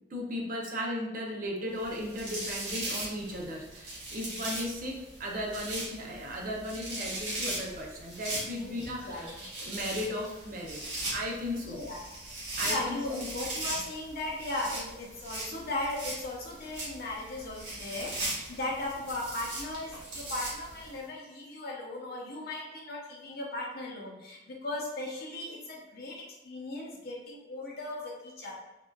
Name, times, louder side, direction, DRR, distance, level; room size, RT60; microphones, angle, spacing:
voice 1, 0.1-9.3 9.6-11.8 12.6-13.3, equal, 45° right, -1 dB, 0.6 m, -36 dB
sound 1, 1.8-21.0, right 1 dB, 70° right, 1.2 m, -39 dB
voice 2, 8.6-9.3 11.5-12.0 12.6-28.5, left 2 dB, 55° left, -3 dB, 0.7 m, -37 dB
3.6 x 2.4 x 2.3 m, 1.0 s
head